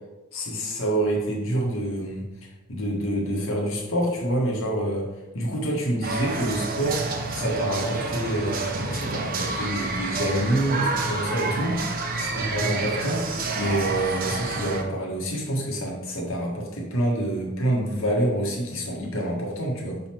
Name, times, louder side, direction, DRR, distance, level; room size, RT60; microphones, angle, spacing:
voice 1, 0.3-2.3 2.7-5.1 5.3-7.0 7.3-11.8 12.2-13.2 13.5-20.0, right 1 dB, 75° left, -2 dB, 1.5 m, -27 dB
sound 1, 6.0-14.8, right 3 dB, 45° right, 0.7 m, -29 dB
6.5 x 4.2 x 4.4 m, 1.1 s
head